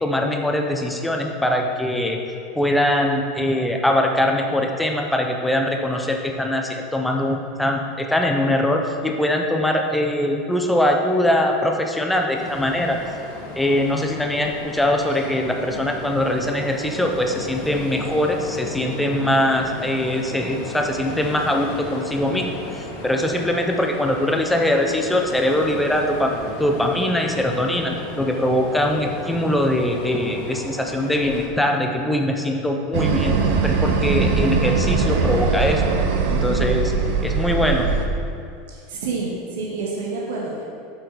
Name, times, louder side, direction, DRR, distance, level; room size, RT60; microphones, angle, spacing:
voice 1, 0.0-2.2 2.5-13.0 13.5-22.5 22.8-26.3 26.6-33.4 33.6-35.8 36.3-36.9 37.2-37.9, left 1 dB, 5° left, 2 dB, 0.5 m, -22 dB
Ocean, 12.3-31.5, left 2 dB, 55° left, 1.8 m, -35 dB
sound 1, 32.9-38.1, right 5 dB, 50° right, 0.7 m, -21 dB
voice 2, 38.7-40.6, right 3 dB, 80° right, -3 dB, 1.6 m, -28 dB
8.4 x 6.7 x 4.1 m, 2.6 s
supercardioid pair, 180°, 0 cm